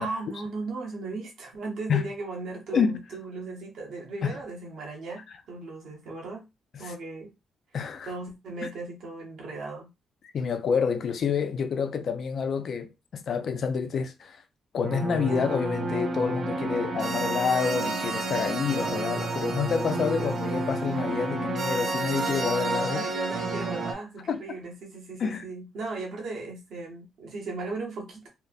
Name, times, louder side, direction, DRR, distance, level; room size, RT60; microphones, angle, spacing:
voice 1, 0.0-6.4 6.8-7.3 8.0-9.9 22.9-28.3, right 3 dB, 70° right, 1.1 m, -37 dB
voice 2, 7.7-8.1 10.3-14.4 14.7-23.1 24.3-24.6 25.2-25.4, left 6 dB, 55° left, 0.5 m, -28 dB
sound 1, 14.8-23.9, right 3 dB, 50° right, 0.6 m, -30 dB
2.9 x 2.0 x 2.4 m
cardioid pair, 90°, 0 cm